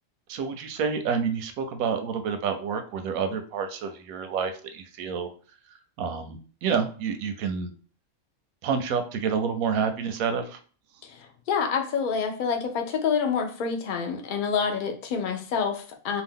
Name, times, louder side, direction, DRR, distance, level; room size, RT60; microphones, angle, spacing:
voice 1, 0.3-5.3 6.0-7.7 8.6-10.6, right 6 dB, 90° right, 7 dB, 1.0 m, -28 dB
voice 2, 11.1-16.2, left 6 dB, 55° left, 4 dB, 0.5 m, -27 dB
2.7 x 2.4 x 3.5 m, 0.41 s
omnidirectional pair, 1.5 m